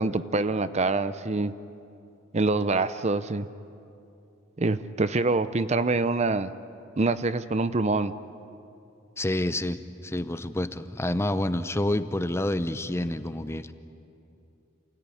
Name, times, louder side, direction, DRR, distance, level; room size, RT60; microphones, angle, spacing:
voice 1, 0.0-1.5 2.3-3.5 4.6-6.5 7.0-8.1, right 3 dB, 35° right, 13 dB, 0.6 m, -25 dB
voice 2, 9.2-13.7, left 1 dB, 15° left, 11 dB, 0.7 m, -28 dB
28.5 x 17.0 x 9.9 m, 2.7 s
head